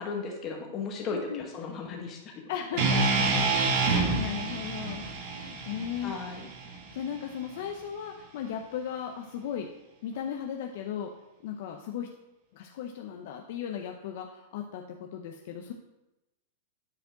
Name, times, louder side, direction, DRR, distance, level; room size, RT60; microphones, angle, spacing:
voice 1, 0.0-2.3 2.7-3.3 6.0-6.5, left 4 dB, 35° left, 1 dB, 1.7 m, -36 dB
voice 2, 1.1-1.5 2.5-3.1 3.8-6.5 6.9-9.7 10.0-11.1 11.4-12.1 12.5-15.7, left 8 dB, 65° left, 3 dB, 0.7 m, -36 dB
sound 1, 2.8-6.9, right 3 dB, 55° right, 1.6 m, -28 dB
9.7 x 4.5 x 3.9 m, 0.95 s
hypercardioid pair, 125°, 0 cm